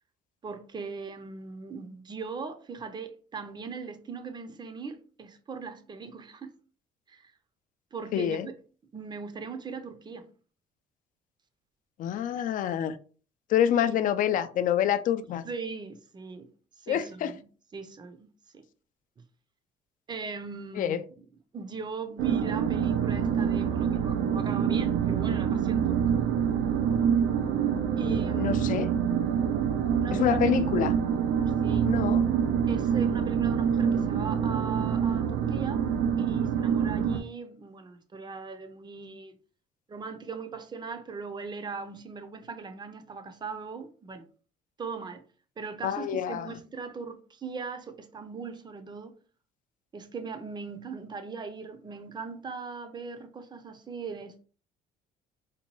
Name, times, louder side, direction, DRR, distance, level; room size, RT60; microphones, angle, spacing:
voice 1, 0.4-6.5 7.1-7.3 7.9-8.5 8.9-10.3 13.7-14.0 15.2-16.5 16.8-17.4 17.7-18.3 18.5-18.6 19.2-19.3 20.1-21.0 21.5-26.0 28.0-28.6 30.0-30.6 31.6-31.9 32.7-35.8 36.2-39.3 39.9-44.2 44.8-45.2 45.6-49.1 49.9-54.4, right 5 dB, 25° right, 0.5 m, -39 dB
voice 2, 8.1-8.5 12.0-13.0 13.5-15.5 16.9-17.3 20.7-21.0 28.4-28.9 30.1-30.9 31.8-32.3 45.8-46.6, left 10 dB, 50° left, 0.4 m, -27 dB
sound 1, 22.2-37.2, right 8 dB, 90° right, 0.5 m, -26 dB
4.0 x 2.2 x 3.0 m
cardioid pair, 110°, 17 cm